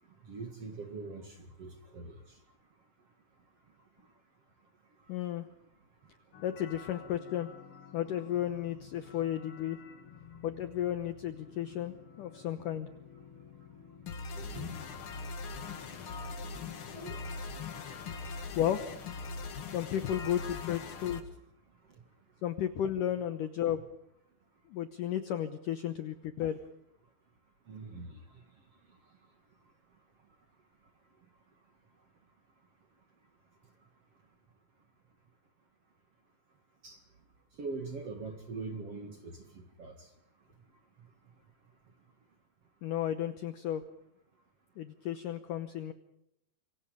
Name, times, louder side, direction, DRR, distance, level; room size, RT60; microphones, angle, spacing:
voice 1, 0.3-2.2 14.3-14.9 16.9-17.2 27.7-28.2 36.8-37.0 37.6-39.4 39.8-40.0, right 3 dB, 50° right, 6 dB, 2.0 m, -42 dB
voice 2, 5.1-5.5 6.4-7.5 7.9-9.8 10.4-12.9 18.6-18.9 19.7-21.2 22.4-23.8 24.7-26.6 42.8-43.8 44.8-45.9, left 11 dB, 90° left, 10 dB, 1.8 m, -33 dB
sound 1, 6.3-21.2, left 4 dB, 60° left, 1.4 m, -44 dB
27.0 x 25.0 x 5.2 m, 0.77 s
omnidirectional pair, 5.3 m